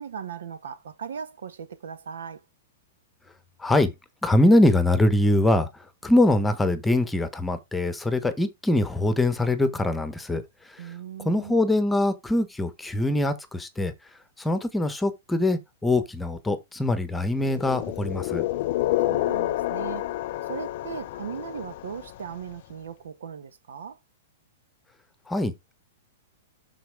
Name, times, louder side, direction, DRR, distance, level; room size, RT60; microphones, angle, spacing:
voice 1, 0.0-2.4 10.8-11.6 19.0-20.1 20.5-24.0, right 7 dB, 85° right, 1.4 m, -38 dB
voice 2, 3.6-3.9 4.2-5.7 6.0-10.4 10.7-10.9 11.2-13.9 14.4-18.4 25.3-25.5, left 1 dB, 5° left, 1.0 m, -23 dB
sound 1, 17.4-22.3, left 16 dB, 50° left, 0.5 m, -29 dB
12.5 x 4.3 x 3.4 m
hypercardioid pair, 160°, 0 cm